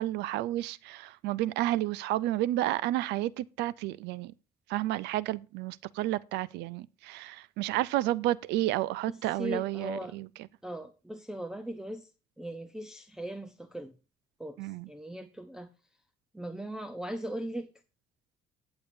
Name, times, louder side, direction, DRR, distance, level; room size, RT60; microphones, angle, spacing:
voice 1, 0.0-4.3 4.7-10.3 14.6-14.9, right 15 dB, 85° right, 0.4 m, -31 dB
voice 2, 9.1-10.2 10.6-12.1 12.4-13.9 14.4-15.7 16.3-17.7, right 1 dB, 5° right, 0.7 m, -39 dB
17.5 x 7.0 x 2.6 m
cardioid pair, 110°, 17 cm